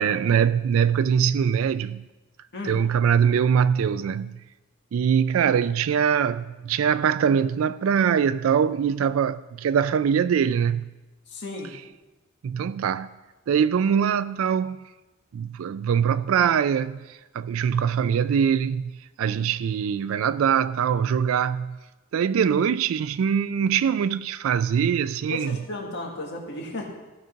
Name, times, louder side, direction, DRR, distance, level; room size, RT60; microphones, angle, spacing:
voice 1, 0.0-2.0 2.6-4.4 4.9-10.9 12.4-13.1 13.5-14.8 15.3-18.9 19.2-21.8 22.1-25.6, right 7 dB, 75° right, 0.3 m, -23 dB
voice 2, 11.3-11.7 25.3-26.9, left 2 dB, 55° left, 1.7 m, -34 dB
15.0 x 5.2 x 6.3 m
head